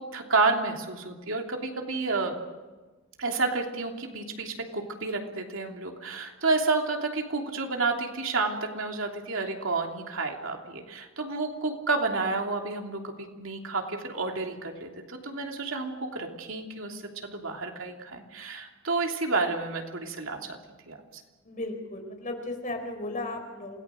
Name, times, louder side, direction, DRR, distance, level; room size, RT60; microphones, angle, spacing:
voice 1, 0.0-2.4 3.2-20.6 20.9-21.2, right 3 dB, 70° right, 3 dB, 3.1 m, -30 dB
voice 2, 21.5-23.8, left 2 dB, 40° left, 4 dB, 4.6 m, -35 dB
28.0 x 18.5 x 6.4 m, 1.3 s
head